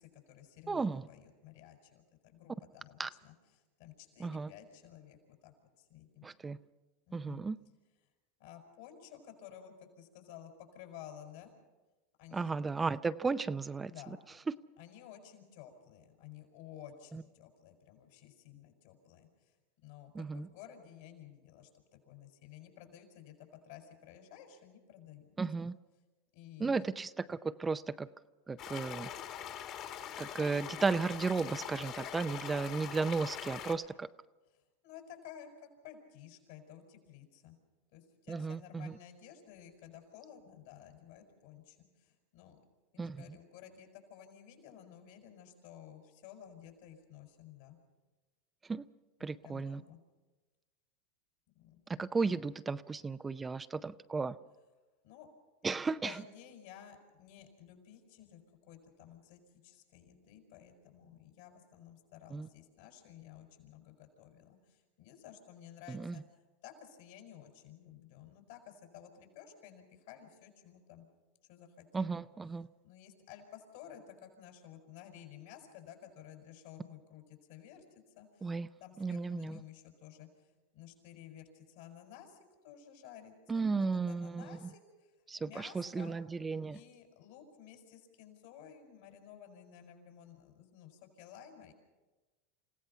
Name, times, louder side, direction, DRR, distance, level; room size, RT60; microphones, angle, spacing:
voice 1, 0.0-3.3 3.8-6.3 7.1-7.4 8.4-11.5 12.2-12.5 13.9-14.2 14.8-19.5 19.8-25.4 26.3-26.9 34.8-37.6 37.9-42.6 42.9-47.8 49.4-50.0 51.5-51.8 55.0-55.3 56.0-66.2 66.6-71.1 71.5-72.2 72.8-78.5 78.8-86.1 86.7-91.7, left 10 dB, 70° left, 4 dB, 6.0 m, -54 dB
voice 2, 0.7-1.1 3.0-3.1 4.2-4.5 6.2-6.6 7.1-7.6 12.3-13.9 14.5-14.6 17.1-17.2 20.1-20.5 25.4-25.8 26.6-28.1 28.5-29.1 30.2-34.1 38.3-39.0 43.0-43.2 48.6-48.9 49.2-49.8 51.9-54.4 55.6-56.2 62.3-62.5 65.9-66.2 71.9-72.7 78.4-78.7 79.0-79.6 83.5-84.7 85.3-86.8, right 4 dB, 15° right, 12 dB, 0.6 m, -34 dB
sound 1, 28.6-33.8, left 9 dB, 50° left, 2.4 m, -43 dB
28.5 x 16.5 x 5.7 m, 1.2 s
hypercardioid pair, 100°, 0 cm